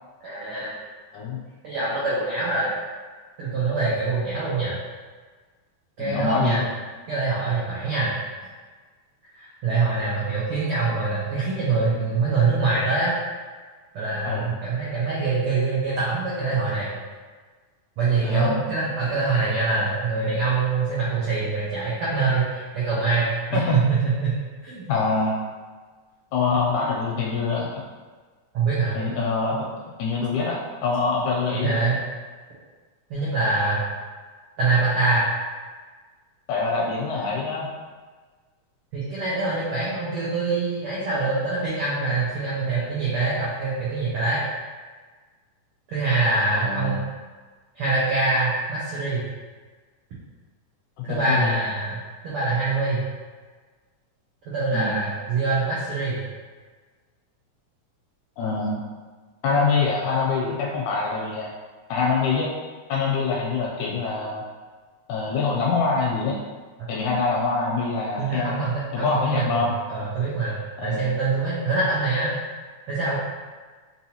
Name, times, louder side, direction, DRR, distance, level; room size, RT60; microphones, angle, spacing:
voice 1, 0.2-0.7 1.6-2.7 3.4-4.8 6.0-6.6 7.1-8.1 9.3-13.1 13.9-16.9 18.0-24.9 28.5-29.0 31.6-32.0 33.1-33.8 34.6-35.3 38.9-44.4 45.9-47.0 47.7-49.2 51.0-52.0 52.2-53.0 54.4-56.2 66.8-66.9 68.2-72.3 72.9-73.2, right 3 dB, 85° right, -8 dB, 1.2 m, -24 dB
voice 2, 6.0-6.7 14.2-14.5 18.2-18.6 23.5-23.8 24.9-25.4 26.3-27.7 28.9-29.7 30.0-31.8 36.5-37.7 46.5-47.0 51.0-51.6 54.7-54.9 58.4-58.9 59.4-61.5 61.9-62.5 62.9-64.4 65.1-66.4 66.9-68.6 68.9-69.7 70.8-71.0, left 4 dB, 80° left, -3 dB, 1.8 m, -25 dB
5.4 x 2.8 x 2.8 m, 1.4 s
omnidirectional pair, 3.7 m